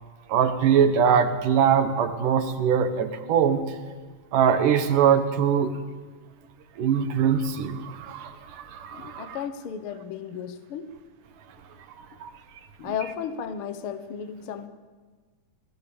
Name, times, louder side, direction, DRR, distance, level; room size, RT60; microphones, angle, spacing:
voice 1, 0.3-3.6 4.3-5.7 6.8-9.4 12.2-12.3, right 7 dB, 80° right, 9 dB, 3.1 m, -22 dB
voice 2, 8.9-10.9 12.8-14.7, left 8 dB, 55° left, 10 dB, 1.6 m, -34 dB
27.0 x 19.0 x 7.1 m, 1.4 s
omnidirectional pair, 3.7 m